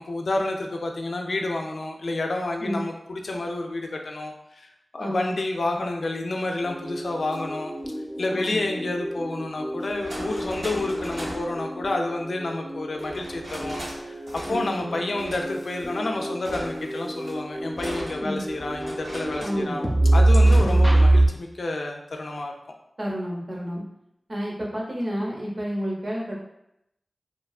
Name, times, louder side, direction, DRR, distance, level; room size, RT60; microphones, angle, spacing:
voice 1, 0.0-7.7 8.2-14.2 14.5-19.9 20.1-22.5, left 2 dB, 80° left, 2 dB, 0.3 m, -29 dB
voice 2, 5.0-5.3 8.3-8.6 14.5-15.0 18.2-18.4 19.4-19.8 20.6-20.9 23.0-23.8 24.3-26.4, equal, 55° right, -3 dB, 0.7 m, -30 dB
sound 1, 6.6-21.3, right 1 dB, 20° right, 0.5 m, -25 dB
sound 2, 7.2-7.4 9.0-9.1 9.8-11.5 13.0-14.0 14.3-14.8 15.2-16.0 16.5-19.7 20.4-20.8, equal, 90° right, 1.2 m, -38 dB
2.9 x 2.3 x 2.3 m, 0.81 s
wide cardioid pair, 60°, 0 cm